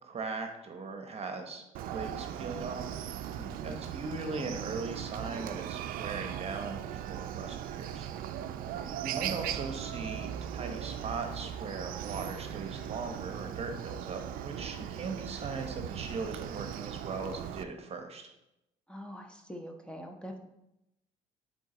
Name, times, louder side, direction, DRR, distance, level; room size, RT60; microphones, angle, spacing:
voice 1, 0.0-1.6 1.9-3.1 3.6-8.1 9.0-18.3, right 4 dB, 40° right, 5 dB, 1.1 m, -39 dB
Chicken rooster, 1.7-17.6, right 10 dB, 65° right, 0.5 m, -38 dB
voice 2, 3.4-3.8 8.7-9.0 14.8-15.2 18.9-20.5, equal, 5° left, 3 dB, 1.0 m, -45 dB
7.8 x 3.8 x 3.9 m, 0.87 s
supercardioid pair, 70°, 16 cm